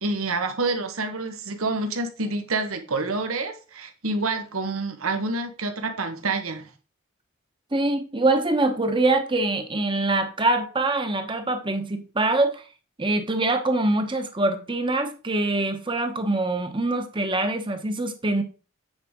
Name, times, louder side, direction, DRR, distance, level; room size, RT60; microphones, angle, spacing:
voice 1, 0.0-6.7, right 3 dB, 90° right, 1.3 m, -28 dB
voice 2, 7.7-12.6 13.0-18.4, right 2 dB, 25° right, 1.0 m, -24 dB
8.8 x 5.0 x 3.7 m
head